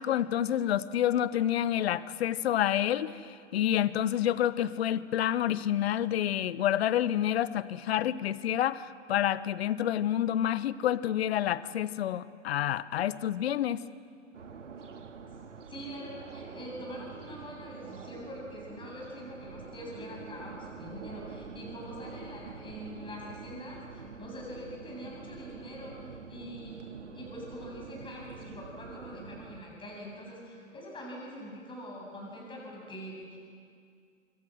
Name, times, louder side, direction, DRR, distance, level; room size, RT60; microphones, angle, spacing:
voice 1, 0.0-3.1 3.5-13.8, left 11 dB, 55° left, 17 dB, 1.0 m, -28 dB
sound 1, 14.3-29.6, right 5 dB, 75° right, 2.0 m, -46 dB
voice 2, 15.7-33.4, equal, 15° left, -2 dB, 7.9 m, -44 dB
26.5 x 24.5 x 6.4 m, 2.2 s
figure-of-eight pair, 115°, 37 cm